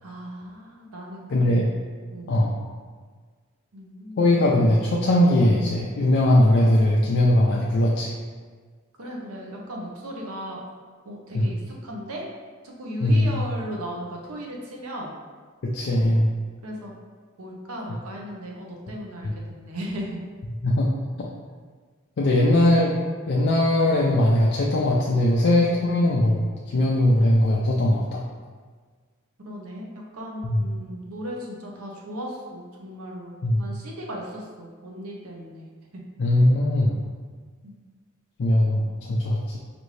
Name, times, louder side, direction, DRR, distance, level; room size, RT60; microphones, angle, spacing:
voice 1, 0.0-1.6 2.1-2.4 3.7-4.3 9.0-10.6 11.0-12.2 12.6-15.2 16.6-16.9 17.4-20.2 22.3-22.5 29.4-29.9 30.1-35.7 35.9-36.0 37.6-37.8, equal, 80° right, -1 dB, 0.8 m, -36 dB
voice 2, 1.3-1.7 2.3-2.6 4.2-8.1 11.3-11.5 13.0-13.3 15.6-16.3 19.2-19.3 20.6-20.9 21.2-21.3 22.2-22.9 23.3-28.2 30.4-30.6 33.4-33.6 36.2-36.9 38.4-39.6, left 1 dB, 55° left, -3 dB, 0.4 m, -20 dB
5.1 x 2.6 x 3.2 m, 1.5 s
head